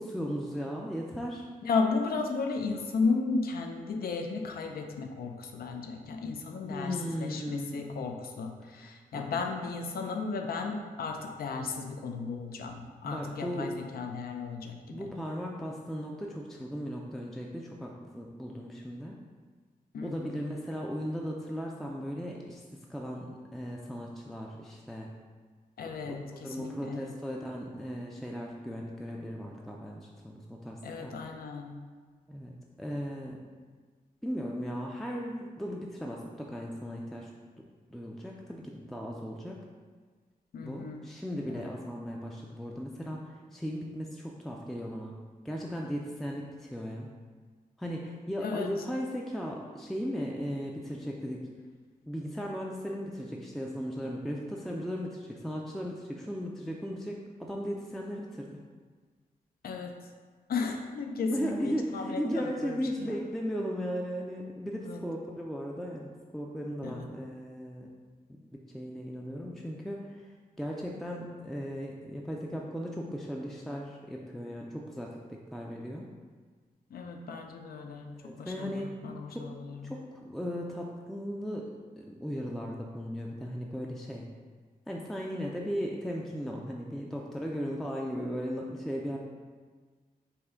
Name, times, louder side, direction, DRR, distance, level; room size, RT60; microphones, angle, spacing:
voice 1, 0.0-1.5 6.7-8.0 8.7-9.3 13.0-13.7 14.9-19.2 20.0-22.6 22.9-25.1 26.1-31.2 32.3-33.4 34.2-37.3 37.9-39.6 40.6-45.1 45.4-47.1 47.8-51.5 52.1-58.5 61.3-67.9 68.3-76.1 78.1-79.0 79.3-79.6 79.8-81.7 82.0-84.3 84.9-89.2, equal, ahead, -1 dB, 0.3 m, -37 dB
voice 2, 1.6-15.1 19.9-20.4 25.8-27.0 30.8-31.7 40.5-41.1 41.5-41.7 48.4-48.7 59.6-59.9 60.5-63.2 64.8-65.0 66.8-67.1 76.9-78.1 78.4-79.9, left 4 dB, 85° left, 4 dB, 0.5 m, -34 dB
5.5 x 2.1 x 3.7 m, 1.5 s
wide cardioid pair, 100°, 15 cm